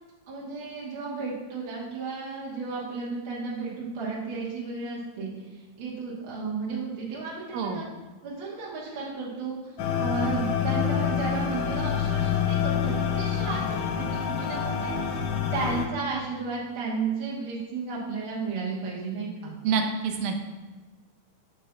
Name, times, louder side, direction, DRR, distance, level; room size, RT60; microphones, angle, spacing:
voice 1, 0.3-5.3 5.8-7.8 8.2-9.6 10.0-15.2 15.5-19.5, right 4 dB, 60° right, -6 dB, 1.4 m, -33 dB
voice 2, 7.5-7.8 19.6-20.5, right 5 dB, 85° right, 4 dB, 2.4 m, -27 dB
sound 1, 9.8-15.9, left 7 dB, 75° left, 1.7 m, -27 dB
7.5 x 6.6 x 2.3 m, 1.3 s
omnidirectional pair, 4.0 m